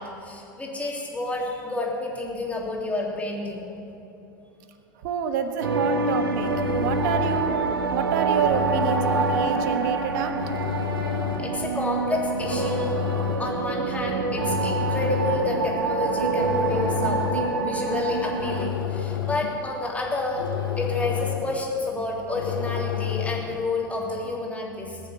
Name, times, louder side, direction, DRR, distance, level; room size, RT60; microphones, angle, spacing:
voice 1, 0.0-3.7 11.4-13.0 13.4-20.4 20.8-25.0, left 2 dB, 10° left, -2 dB, 3.3 m, -29 dB
voice 2, 5.0-7.6 7.9-10.3, right 7 dB, 60° right, 8 dB, 1.3 m, -28 dB
sound 1, 5.6-18.7, right 4 dB, 85° right, 1.0 m, -26 dB
sound 2, 6.2-23.7, left 10 dB, 85° left, 1.3 m, -32 dB
20.0 x 7.1 x 7.6 m, 3.0 s
hypercardioid pair, 85°, 12 cm